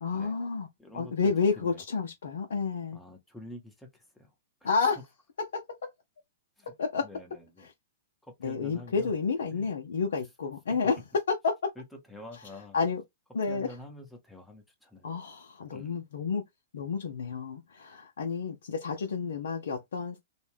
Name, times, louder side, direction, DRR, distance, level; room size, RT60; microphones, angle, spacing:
voice 1, 0.0-0.7 0.9-3.0 4.6-5.0 5.4-5.8 6.7-7.1 8.4-11.0 11.3-11.5 12.7-13.0 13.3-13.7 15.0-16.4 16.7-20.2, left 5 dB, 70° left, 0.5 m, -30 dB
voice 2, 0.8-1.8 2.9-4.3 4.6-4.7 6.6-6.7 7.0-7.7 8.2-9.1 9.5-9.7 10.7-10.8 11.8-12.8 13.5-15.1 15.7-15.9, left 1 dB, 5° left, 0.7 m, -47 dB
2.5 x 2.1 x 3.2 m
hypercardioid pair, 110°, 0 cm